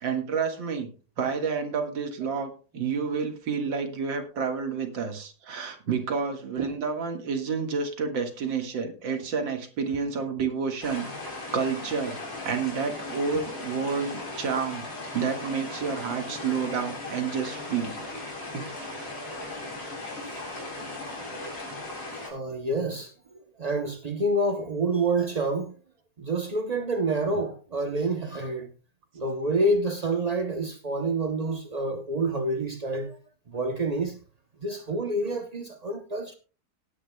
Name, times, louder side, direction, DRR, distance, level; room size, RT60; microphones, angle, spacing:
voice 1, 0.0-12.2 12.5-14.9 15.1-18.0 18.5-19.4, right 5 dB, 90° right, 2.4 m, -30 dB
sound 1, 10.8-22.3, left 2 dB, 75° left, 4.8 m, -37 dB
voice 2, 22.2-23.1 23.6-25.7 26.2-28.7 29.1-33.2 33.5-34.2 34.6-36.4, right 2 dB, 50° right, 0.4 m, -28 dB
18.5 x 10.0 x 2.2 m
omnidirectional pair, 2.0 m